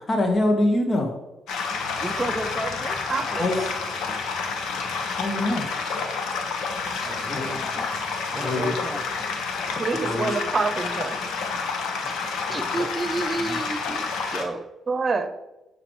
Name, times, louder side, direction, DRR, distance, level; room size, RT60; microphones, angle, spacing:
voice 1, 0.1-1.1 3.4-3.6 4.4-4.6 5.0-5.7 7.3-7.5 8.3-8.7 9.7-10.3 13.5-13.6, left 1 dB, 35° left, 2 dB, 1.5 m, -25 dB
sound 1, 1.5-14.5, left 4 dB, 80° left, 1.3 m, -29 dB
voice 2, 2.0-3.0 7.0-8.0 8.3-9.0 9.9-10.0 12.0-14.7, right 2 dB, 15° right, 8 dB, 0.6 m, -32 dB
voice 3, 3.1-3.5 9.8-11.2 14.9-15.3, right 4 dB, 35° right, 9 dB, 1.0 m, -26 dB
9.8 x 6.0 x 3.2 m, 1.0 s
cardioid pair, 90°, 0 cm